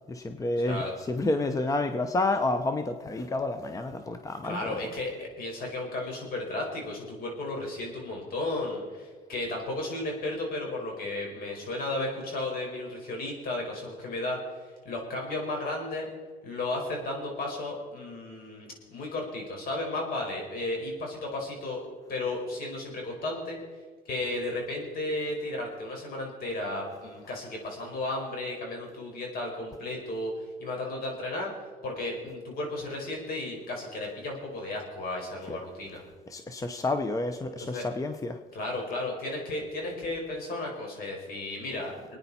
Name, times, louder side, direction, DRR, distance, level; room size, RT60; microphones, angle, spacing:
voice 1, 0.1-4.8 35.5-35.6 36.3-38.4, left 2 dB, 20° left, 8 dB, 0.8 m, -29 dB
voice 2, 4.4-14.4 14.8-16.1 16.4-21.8 22.1-23.6 24.0-30.3 30.6-31.5 31.8-36.0 37.6-37.9 38.5-42.2, left 2 dB, 60° left, 0 dB, 5.0 m, -34 dB
25.0 x 9.6 x 4.3 m, 1.5 s
cardioid pair, 110°, 17 cm